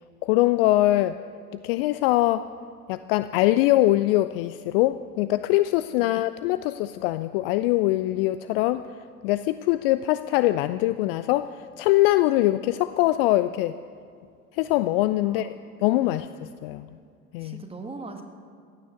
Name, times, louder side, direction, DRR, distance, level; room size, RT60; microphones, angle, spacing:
voice 1, 0.2-1.2 1.6-2.5 2.9-8.8 9.2-13.7 14.6-15.5 15.8-16.3 16.6-16.9 17.3-17.6, left 16 dB, 45° left, 14 dB, 0.4 m, -22 dB
voice 2, 17.4-18.2, right 3 dB, 15° right, 5 dB, 1.5 m, -40 dB
15.5 x 9.7 x 7.8 m, 2.2 s
figure-of-eight pair, 70°, 44 cm